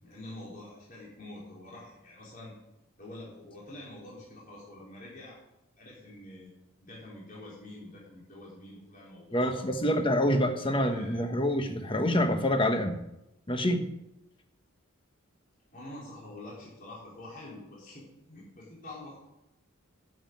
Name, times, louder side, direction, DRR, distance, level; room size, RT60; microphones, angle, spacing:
voice 1, 0.0-2.5 3.0-5.4 5.8-6.5 6.8-10.0 10.7-11.3 15.7-19.2, left 1 dB, 40° left, -6 dB, 4.0 m, -46 dB
voice 2, 9.3-13.0 13.5-13.9, left 1 dB, 25° left, 6 dB, 1.2 m, -26 dB
9.9 x 7.4 x 9.4 m, 0.89 s
head